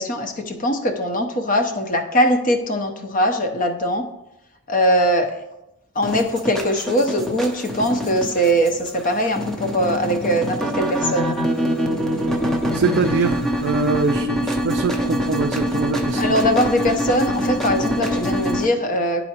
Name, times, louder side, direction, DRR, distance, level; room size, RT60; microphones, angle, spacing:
voice 1, 0.0-4.0 4.7-5.5 6.0-11.4 16.1-19.2, equal, 40° left, 6 dB, 0.7 m, -21 dB
sound 1, 6.0-18.6, equal, ahead, 0.6 m, -24 dB
voice 2, 12.7-16.3, right 4 dB, 55° right, 3 dB, 0.4 m, -23 dB
11.0 x 4.2 x 2.9 m, 0.91 s
head